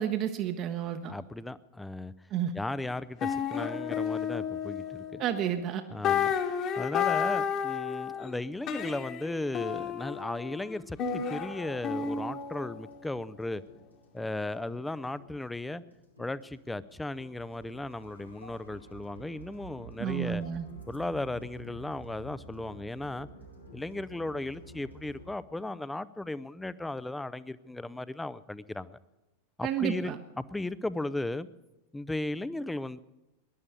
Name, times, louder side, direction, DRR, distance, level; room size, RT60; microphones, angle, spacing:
voice 1, 0.0-1.1 2.3-2.5 5.2-5.8 20.0-20.7 29.6-30.2, right 9 dB, 35° right, 7 dB, 0.9 m, -31 dB
voice 2, 1.1-2.1 2.5-5.2 5.9-13.6 14.1-15.8 16.2-20.4 20.9-23.3 23.7-29.0 29.6-31.5 31.9-33.0, left 2 dB, 5° left, 17 dB, 0.5 m, -36 dB
sound 1, 2.9-3.0 3.2-5.6 6.0-8.3 8.7-13.9, left 7 dB, 35° left, 1.6 m, -32 dB
sound 2, 11.0-25.3, right 1 dB, 90° left, 2.3 m, -51 dB
19.5 x 11.0 x 6.7 m, 1.0 s
figure-of-eight pair, 90°, 0 cm